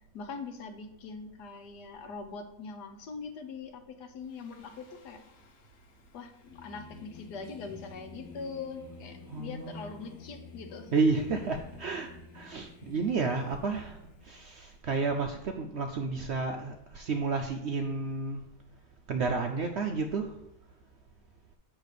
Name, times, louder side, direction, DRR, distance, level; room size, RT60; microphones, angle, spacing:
voice 1, 0.1-5.2 6.1-10.9 11.3-11.4, left 4 dB, 90° left, 6 dB, 1.4 m, -42 dB
Singing, 4.3-14.7, left 4 dB, 65° left, 1.3 m, -51 dB
voice 2, 9.3-10.0 10.9-12.1 12.3-14.0 14.3-18.4 19.1-20.3, right 4 dB, 70° right, 4 dB, 0.6 m, -31 dB
8.2 x 3.4 x 6.5 m, 0.85 s
omnidirectional pair, 1.7 m